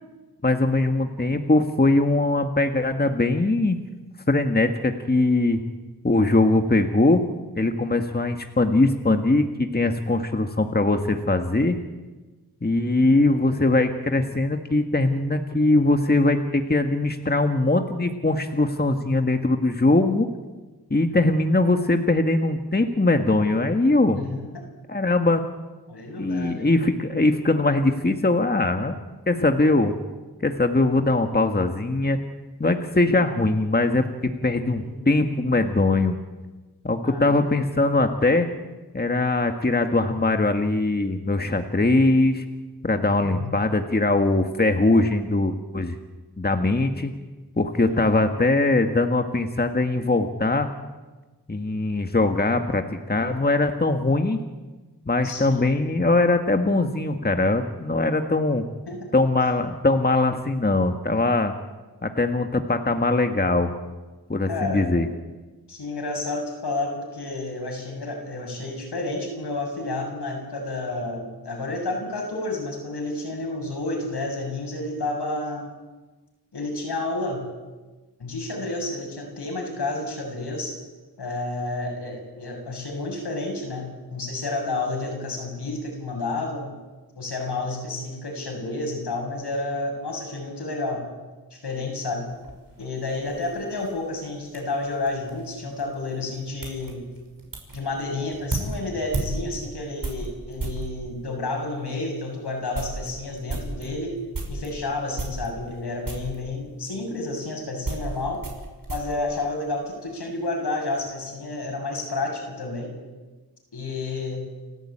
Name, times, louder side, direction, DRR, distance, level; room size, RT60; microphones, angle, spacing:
voice 1, 0.4-3.8 4.3-5.6 6.0-7.2 7.6-11.8 12.6-20.3 20.9-24.2 24.9-25.4 26.2-29.0 29.3-29.9 30.4-32.2 32.6-34.0 34.4-36.2 36.8-38.5 38.9-42.4 42.8-46.0 46.4-47.1 47.6-50.7 51.5-54.4 55.1-58.6 59.1-61.5 62.0-63.7 64.3-65.1, left 2 dB, 25° left, 5 dB, 1.7 m, -21 dB
voice 2, 24.1-24.6 25.9-26.7 34.8-34.9 37.0-37.3 43.2-43.5 47.9-48.5 55.2-55.7 58.9-59.1 64.5-64.9 65.7-75.7 76.5-77.5 78.2-80.8 81.2-86.7 87.2-91.0 91.5-92.3 92.8-97.0 97.7-104.2 104.5-108.4 108.9-112.9 113.7-114.5, left 2 dB, 80° left, 2 dB, 7.3 m, -30 dB
sound 1, 92.3-100.9 101.6-101.7 102.2-102.3 102.5-104.7 105.1-105.8 106.0-106.4 107.2-110.1 110.4-111.0, right 3 dB, 55° right, 6.0 m, -35 dB
29.5 x 14.0 x 8.8 m, 1.2 s
wide cardioid pair, 70°, 39 cm